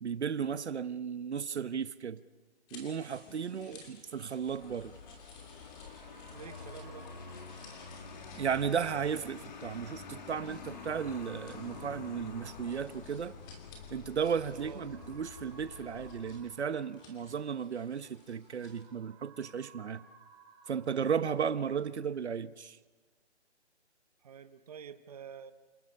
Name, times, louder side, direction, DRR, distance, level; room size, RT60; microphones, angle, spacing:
voice 1, 0.0-2.2 2.7-4.9 8.4-13.3 13.9-20.0 20.7-22.8, right 7 dB, 70° right, 1.0 m, -35 dB
sound 1, 2.7-18.8, left 3 dB, 15° left, 2.9 m, -59 dB
Vehicle, 4.4-16.6, left 5 dB, 40° left, 1.9 m, -48 dB
sound 2, 4.8-21.8, right 5 dB, 10° right, 1.1 m, -60 dB
voice 2, 6.3-7.1 14.5-14.8 24.2-25.5, right 8 dB, 35° right, 1.0 m, -48 dB
28.5 x 27.0 x 5.6 m
hypercardioid pair, 170°, 35 cm